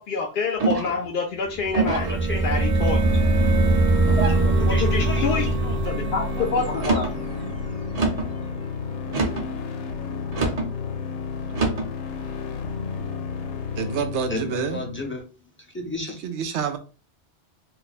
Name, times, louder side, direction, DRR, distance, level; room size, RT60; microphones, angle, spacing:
voice 1, 0.0-2.1 2.4-3.0 4.7-7.1, left 5 dB, 60° left, 0.6 m, -27 dB
sound 1, 0.6-1.1 1.7-2.2 2.8-3.3 4.1-4.5 5.1-5.6 6.7-7.2 7.9-8.3 9.1-9.5 10.3-10.7 11.5-11.9, right 3 dB, 40° right, 0.7 m, -26 dB
sound 2, 1.5-8.3, right 2 dB, 55° right, 0.3 m, -23 dB
voice 2, 2.1-2.7 4.4-5.6 6.4-6.8 14.3-15.2 15.6-16.3, left 2 dB, 15° left, 0.5 m, -33 dB
sound 3, 3.0-15.0, left 5 dB, 90° left, 0.9 m, -32 dB
voice 3, 13.8-14.8 16.2-16.8, right 6 dB, 85° right, 0.9 m, -27 dB
2.5 x 2.2 x 4.0 m
omnidirectional pair, 1.1 m